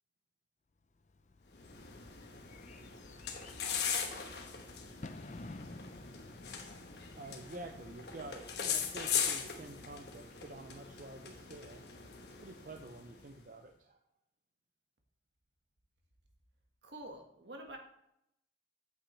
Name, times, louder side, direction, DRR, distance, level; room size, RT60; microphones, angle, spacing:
Bird / Fireworks, 1.0-10.2, left 2 dB, 40° left, 0.5 m, -54 dB
sound 1, 1.5-13.3, left 7 dB, 65° left, 1.2 m, -40 dB
voice 1, 7.1-11.8 12.4-14.0, right 2 dB, 45° right, 5 dB, 0.5 m, -49 dB
voice 2, 16.8-17.8, right 1 dB, 70° right, 3 dB, 1.6 m, -47 dB
8.6 x 8.1 x 3.2 m, 0.78 s
head